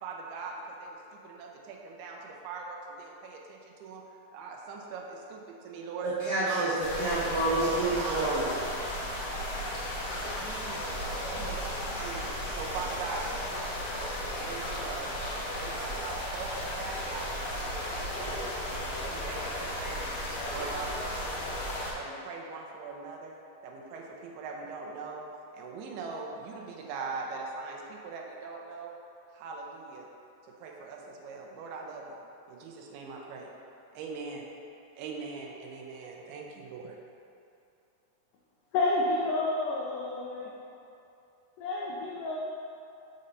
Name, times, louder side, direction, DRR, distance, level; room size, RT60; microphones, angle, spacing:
voice 1, 0.0-4.0 4.3-6.1 6.5-6.8 7.6-9.0 10.4-13.8 14.3-15.1 15.5-20.1 20.5-21.5 21.9-25.2 25.5-29.0 29.3-30.1 30.5-32.2 32.5-33.5 33.9-34.5 35.0-37.0, right 4 dB, 80° right, 0 dB, 2.5 m, -41 dB
voice 2, 6.0-8.4, right 2 dB, 65° right, -10 dB, 1.8 m, -28 dB
sound 1, 6.8-21.9, equal, 65° left, 1.7 m, -35 dB
voice 3, 38.7-40.5 41.6-42.4, left 2 dB, 85° left, -4 dB, 1.8 m, -29 dB
6.6 x 4.1 x 5.3 m, 2.7 s
omnidirectional pair, 4.6 m